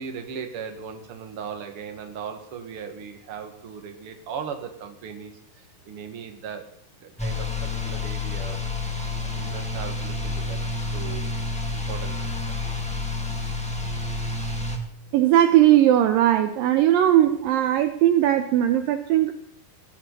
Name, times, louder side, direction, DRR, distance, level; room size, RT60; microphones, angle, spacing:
voice 1, 0.0-6.7 7.0-8.7 9.2-11.4 11.7-12.6, right 6 dB, 45° right, 5 dB, 2.2 m, -38 dB
sound 1, 7.2-14.8, left 3 dB, 5° left, 0.8 m, -29 dB
voice 2, 15.1-19.3, right 12 dB, 75° right, 8 dB, 2.3 m, -19 dB
18.5 x 17.5 x 4.2 m, 0.63 s
omnidirectional pair, 4.6 m